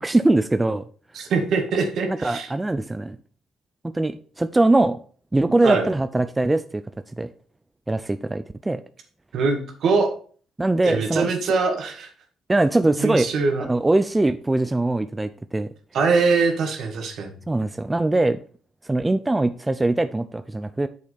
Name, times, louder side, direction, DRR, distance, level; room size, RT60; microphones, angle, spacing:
voice 1, 0.0-0.8 2.1-3.2 3.8-5.0 5.3-6.8 7.2-7.3 7.9-8.8 10.6-11.3 12.5-13.3 13.6-15.7 17.5-18.4 18.9-20.9, right 2 dB, 15° right, 11 dB, 0.5 m, -22 dB
voice 2, 1.1-2.5 5.6-5.9 9.3-10.1 10.8-12.1 13.0-13.7 15.9-17.3, right 4 dB, 70° right, 4 dB, 2.1 m, -22 dB
8.3 x 6.6 x 4.2 m, 0.43 s
cardioid pair, 90°, 0 cm